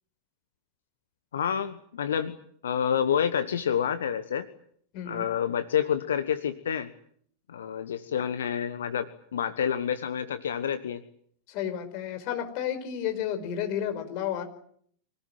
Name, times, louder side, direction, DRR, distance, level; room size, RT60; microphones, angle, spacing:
voice 1, 1.3-2.4 2.6-4.5 5.0-6.9 7.5-11.0, left 8 dB, 65° left, 11 dB, 1.3 m, -28 dB
voice 2, 4.9-5.2 11.5-14.4, left 9 dB, 45° left, 8 dB, 5.0 m, -31 dB
25.5 x 19.0 x 9.2 m, 0.64 s
figure-of-eight pair, 90°, 0 cm